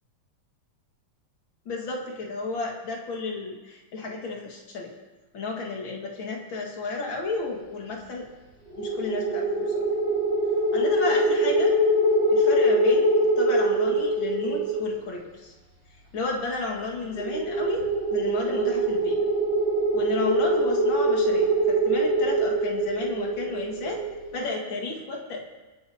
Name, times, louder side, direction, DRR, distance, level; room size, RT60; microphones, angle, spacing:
voice 1, 1.7-4.9 5.3-8.3 8.8-9.7 10.7-11.8 12.3-13.1 13.4-15.5 16.1-17.8 18.1-19.2 19.9-24.0 24.3-25.5, left 3 dB, 45° left, 0 dB, 2.0 m, -32 dB
sound 1, 8.7-14.9 17.2-24.2, right 1 dB, 20° left, 2.1 m, -23 dB
28.0 x 10.0 x 2.8 m, 1.2 s
omnidirectional pair, 3.9 m